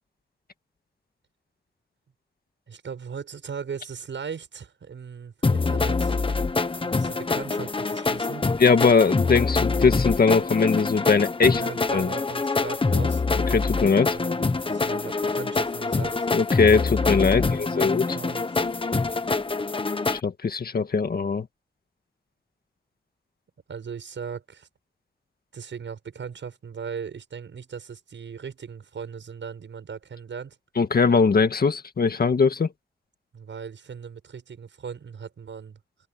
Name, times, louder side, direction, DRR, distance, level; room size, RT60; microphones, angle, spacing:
voice 1, 2.7-6.2 6.8-8.4 11.4-13.2 14.1-16.3 17.3-18.7 23.7-24.7 25.5-30.6 33.3-35.8, right 6 dB, 70° right, 7.7 m, -38 dB
sound 1, 5.4-20.2, left 3 dB, 25° left, 1.3 m, -25 dB
voice 2, 8.6-11.6 11.9-12.1 13.5-14.2 16.3-18.1 20.1-21.5 30.8-32.7, left 5 dB, 50° left, 1.9 m, -21 dB
wide cardioid pair, 145°, 20 cm